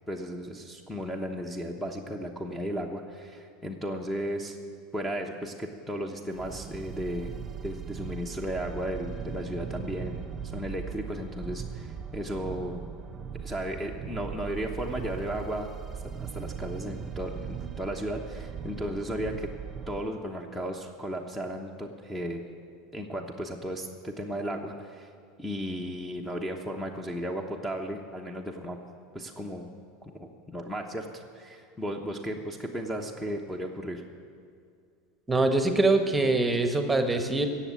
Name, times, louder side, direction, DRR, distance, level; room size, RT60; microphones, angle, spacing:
voice 1, 0.1-4.6 4.9-7.3 7.6-10.2 10.5-12.8 13.3-15.7 16.2-19.5 19.9-22.4 22.9-25.1 25.4-28.8 29.1-29.7 30.0-34.0, equal, 5° left, 3 dB, 1.0 m, -35 dB
sound 1, 6.3-20.0, right 7 dB, 25° right, 0.6 m, -39 dB
voice 2, 35.3-37.5, right 2 dB, 10° right, 6 dB, 1.2 m, -23 dB
16.5 x 7.2 x 8.4 m, 2.4 s
supercardioid pair, 125°, 0 cm